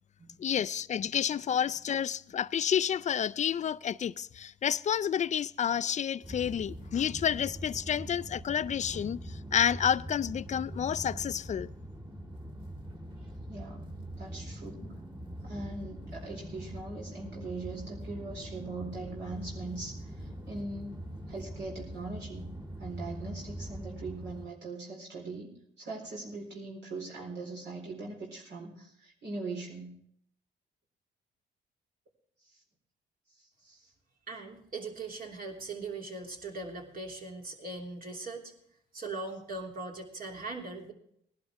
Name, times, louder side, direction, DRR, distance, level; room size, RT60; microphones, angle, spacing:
voice 1, 0.4-11.7, left 8 dB, 35° left, 0.4 m, -30 dB
sound 1, 6.2-24.5, right 1 dB, 25° right, 2.5 m, -43 dB
voice 2, 13.2-13.9 14.2-21.0 21.3-22.5 22.8-25.5 25.8-30.0 32.4-32.6 33.3-33.9, right 3 dB, 65° right, 4.3 m, -41 dB
voice 3, 34.3-38.5 38.9-40.9, right 3 dB, 45° right, 3.1 m, -40 dB
19.0 x 11.5 x 3.5 m
cardioid pair, 90°, 20 cm